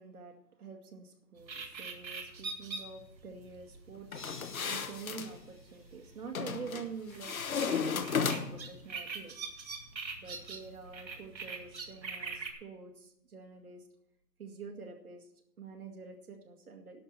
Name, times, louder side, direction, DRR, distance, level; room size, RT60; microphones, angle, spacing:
voice 1, 0.0-9.4 10.2-13.8 14.4-15.3 15.6-17.0, right 5 dB, 60° right, 2 dB, 2.1 m, -47 dB
sound 1, 1.4-12.5, right 4 dB, 90° right, 2.1 m, -44 dB
sound 2, 4.1-5.3 6.3-6.9 7.2-8.7, left 6 dB, 55° left, 1.2 m, -34 dB
sound 3, 4.1-6.5, left 4 dB, 30° left, 0.8 m, -53 dB
11.5 x 6.1 x 8.0 m, 0.75 s
hypercardioid pair, 165°, 50 cm